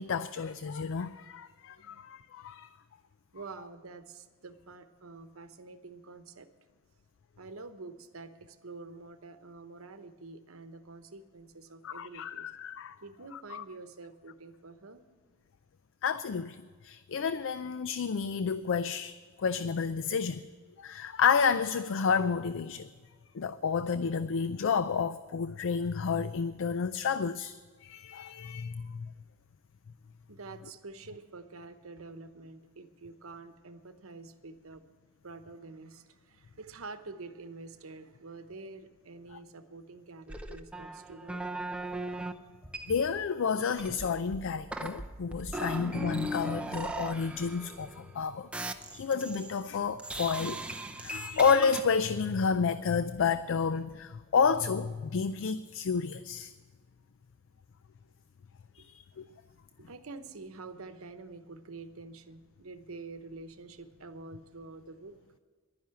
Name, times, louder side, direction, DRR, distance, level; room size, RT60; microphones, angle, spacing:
voice 1, 0.0-2.7 11.8-13.0 13.3-13.6 16.0-20.5 20.8-22.9 23.3-29.1 39.3-39.4 42.9-48.5 48.9-50.6 51.0-56.5 58.8-59.3, left 6 dB, 65° left, 0.4 m, -30 dB
voice 2, 3.3-6.5 7.4-12.5 13.0-15.1 30.3-34.8 35.2-41.4 59.8-65.1, right 3 dB, 70° right, 1.0 m, -47 dB
sound 1, 40.3-42.3 42.6-43.3 43.7-48.1 48.5-49.7 50.0-51.8, right 1 dB, 5° right, 0.7 m, -38 dB
11.5 x 10.5 x 7.6 m
head